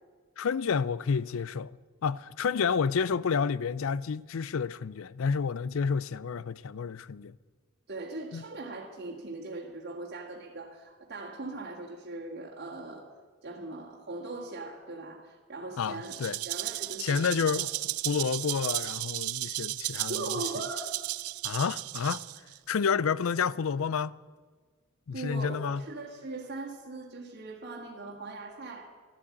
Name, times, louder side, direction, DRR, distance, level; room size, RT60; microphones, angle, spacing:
voice 1, 0.4-1.7 2.0-7.3 8.3-8.4 15.8-16.4 17.0-17.7 18.0-20.2 21.4-22.2 22.7-24.2 25.1-25.8, left 6 dB, 70° left, 0.4 m, -29 dB
voice 2, 7.9-13.1 13.4-16.1 16.4-17.7 20.1-21.1 25.1-28.9, right 2 dB, 50° right, 2.0 m, -40 dB
Rattle (instrument), 16.0-22.6, right 18 dB, 85° right, 0.4 m, -34 dB
12.5 x 12.0 x 8.7 m
head